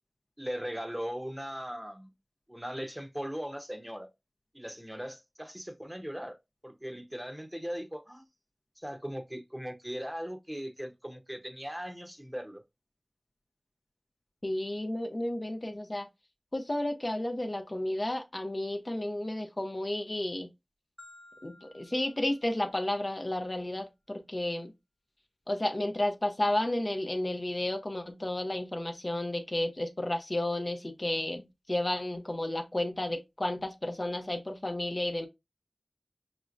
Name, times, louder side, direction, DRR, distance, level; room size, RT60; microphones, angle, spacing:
voice 1, 0.4-2.1 2.5-4.1 4.5-6.4 6.6-8.2 8.8-12.6, equal, 10° right, 0.8 m, -39 dB
voice 2, 14.4-16.1 16.5-20.5 21.4-24.7 25.5-35.3, left 1 dB, 40° left, 0.6 m, -32 dB
Marimba xylophone, 21.0-23.2, left 1 dB, 60° left, 1.0 m, -56 dB
5.9 x 2.0 x 2.5 m
wide cardioid pair, 40°, 0 cm